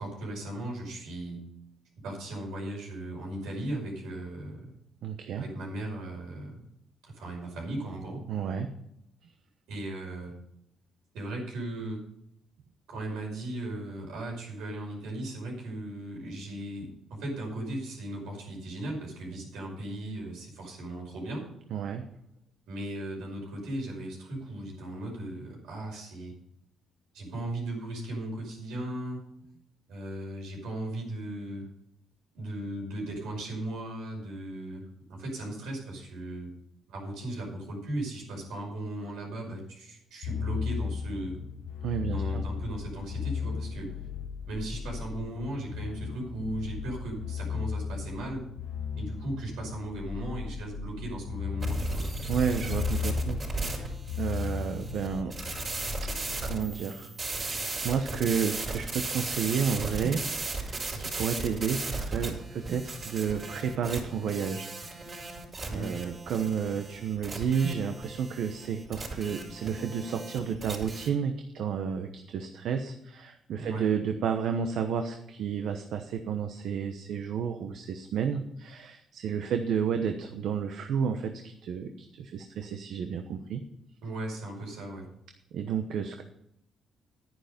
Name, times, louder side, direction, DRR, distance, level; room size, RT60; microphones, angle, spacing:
voice 1, 0.0-1.5 2.0-4.7 5.4-6.7 7.0-8.3 9.7-10.4 11.1-12.0 12.9-21.5 22.7-26.4 27.1-29.2 29.9-31.7 32.3-36.5 36.9-41.4 42.0-43.9 44.5-48.4 49.0-52.1 65.7-66.0 73.6-73.9 84.0-85.1, right 1 dB, 90° right, -1 dB, 5.5 m, -37 dB
voice 2, 5.0-5.4 8.3-8.7 21.7-22.0 41.8-42.4 52.3-53.9 54.2-55.3 56.4-57.1 57.4-60.2 60.5-65.4 65.7-83.6 85.5-86.2, right 7 dB, 75° right, 6 dB, 1.0 m, -31 dB
sound 1, 40.2-56.7, left 6 dB, 80° left, 0.8 m, -36 dB
sound 2, 51.6-71.1, right 3 dB, 40° right, 4.6 m, -36 dB
11.0 x 9.9 x 5.2 m, 0.77 s
cardioid pair, 90°, 0 cm